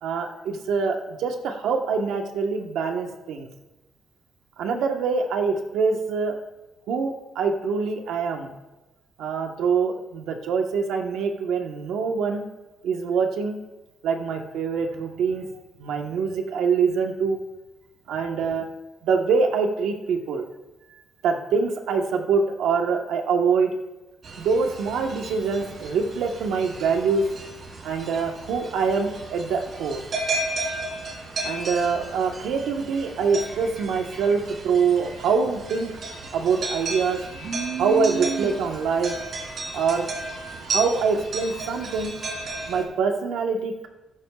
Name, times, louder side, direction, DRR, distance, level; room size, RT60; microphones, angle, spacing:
voice 1, 0.0-3.5 4.6-6.3 6.9-8.5 9.2-12.5 12.8-13.6 14.0-15.5 15.8-17.4 18.1-18.7 19.0-20.5 21.2-23.7 24.4-27.3 27.8-30.0 31.4-36.0 36.3-37.2 37.8-39.1 39.7-40.1 40.7-42.2 42.7-43.9, right 5 dB, 85° right, 3 dB, 1.3 m, -24 dB
sound 1, 24.2-42.8, right 2 dB, 55° right, 3.4 m, -33 dB
14.0 x 13.5 x 2.5 m, 1.1 s
cardioid pair, 90°, 0 cm